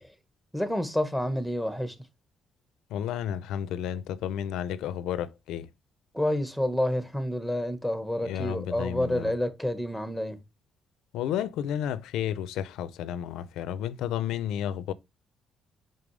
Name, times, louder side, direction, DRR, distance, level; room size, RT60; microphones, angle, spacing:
voice 1, 0.5-1.9 6.1-10.4, left 1 dB, ahead, 1.4 m, -29 dB
voice 2, 2.9-5.7 8.2-9.3 11.1-14.9, left 10 dB, 90° left, 0.5 m, -32 dB
5.6 x 5.3 x 3.3 m
cardioid pair, 90°, 0 cm